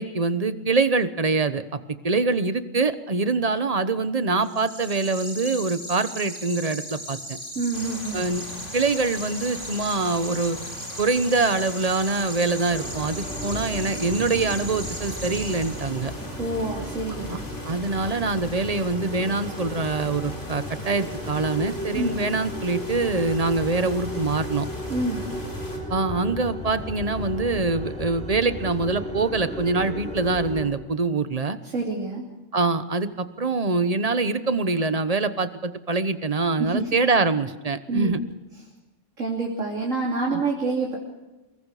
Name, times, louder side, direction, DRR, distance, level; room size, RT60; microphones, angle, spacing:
voice 1, 0.0-1.6 2.0-7.4 8.1-8.4 8.7-10.6 11.0-16.1 17.3-17.4 17.6-24.7 25.9-31.6 32.5-38.2 40.3-40.4, right 3 dB, 30° right, 12 dB, 1.0 m, -24 dB
sound 1, 4.4-16.2, equal, 20° left, 3.5 m, -37 dB
voice 2, 7.6-8.2 16.4-17.4 21.9-22.1 24.9-25.3 31.6-32.2 36.6-36.9 37.9-38.1 39.2-41.0, right 3 dB, 80° right, -3 dB, 3.4 m, -27 dB
sound 2, 7.7-25.8, left 1 dB, 65° left, 4.6 m, -40 dB
sound 3, 12.7-30.7, left 1 dB, 5° left, 4.1 m, -35 dB
24.5 x 22.0 x 4.9 m, 1.1 s
omnidirectional pair, 1.3 m